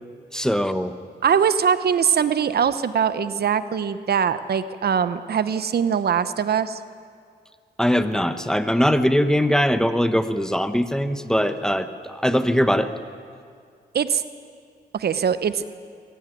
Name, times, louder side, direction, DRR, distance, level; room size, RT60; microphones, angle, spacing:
voice 1, 0.3-1.0 7.8-12.9, equal, 5° left, 10 dB, 1.1 m, -21 dB
voice 2, 1.2-6.8 13.9-14.2 14.9-15.6, right 7 dB, 65° right, 12 dB, 0.9 m, -22 dB
22.5 x 16.0 x 9.2 m, 2.2 s
cardioid pair, 85°, 18 cm